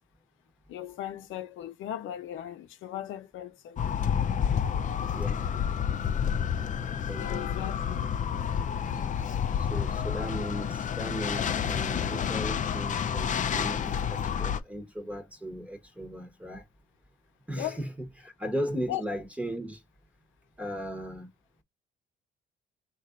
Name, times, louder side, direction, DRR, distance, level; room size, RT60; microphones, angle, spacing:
voice 1, 0.7-4.0 7.1-8.0 17.5-17.8 18.9-19.0, left 12 dB, 85° left, 0.7 m, -38 dB
sound 1, 3.8-14.6, left 8 dB, 40° left, 0.4 m, -29 dB
voice 2, 5.1-5.5 7.1-7.8 9.5-16.6 17.5-19.8 20.6-21.3, equal, 5° right, 1.0 m, -37 dB
3.1 x 2.5 x 3.7 m
cardioid pair, 90°, 20 cm